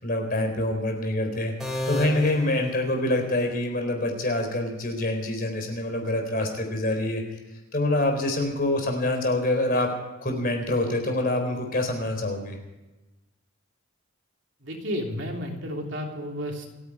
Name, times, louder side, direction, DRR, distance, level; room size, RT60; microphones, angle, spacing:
voice 1, 0.0-1.5 1.9-7.2 7.7-9.9 10.2-12.6, left 1 dB, 45° left, 4 dB, 3.9 m, -26 dB
sound 1, 1.6-3.5, equal, ahead, 5.4 m, -33 dB
voice 2, 14.6-16.7, equal, 60° right, 1 dB, 3.2 m, -32 dB
28.0 x 9.9 x 4.9 m, 1.1 s
head